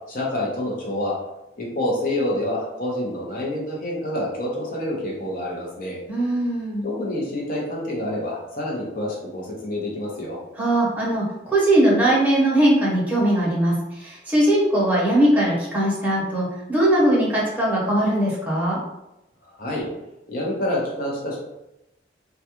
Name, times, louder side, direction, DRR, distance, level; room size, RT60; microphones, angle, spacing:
voice 1, 0.1-1.2 1.6-6.0 6.8-10.4 19.6-19.9 20.3-21.4, left 1 dB, 55° left, -3 dB, 0.8 m, -27 dB
voice 2, 6.1-6.8 10.6-18.8, right 1 dB, 10° right, -7 dB, 0.8 m, -20 dB
2.3 x 2.2 x 2.8 m, 0.90 s
head